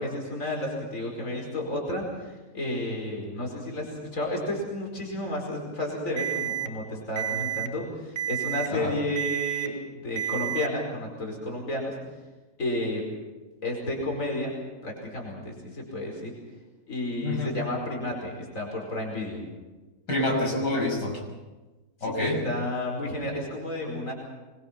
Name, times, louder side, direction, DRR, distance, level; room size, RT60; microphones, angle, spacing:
voice 1, 0.0-11.9 12.6-13.1 13.6-16.3 16.9-19.4 22.0-24.1, left 1 dB, 50° left, 0 dB, 5.4 m, -32 dB
Alarm, 6.2-6.7 7.2-7.7 8.2-8.7 9.2-9.7 10.2-10.7, right 12 dB, 45° right, 1.2 m, -30 dB
voice 2, 17.2-17.5 20.1-21.2 22.0-22.4, left 1 dB, 90° left, -1 dB, 6.8 m, -27 dB
25.0 x 22.0 x 5.9 m, 1.2 s
omnidirectional pair, 1.8 m